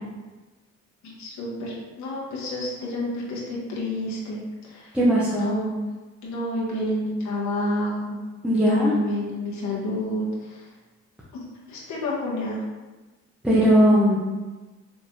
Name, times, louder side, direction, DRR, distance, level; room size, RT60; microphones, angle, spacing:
voice 1, 1.0-4.9 5.3-5.8 6.2-8.2 8.6-10.7 11.3-11.4 11.7-12.6, left 1 dB, 70° left, -5 dB, 1.3 m, -29 dB
voice 2, 4.9-5.5 8.4-8.9 13.4-14.2, equal, 5° right, -8 dB, 0.9 m, -18 dB
5.1 x 3.3 x 2.7 m, 1.2 s
cardioid pair, 90°, 30 cm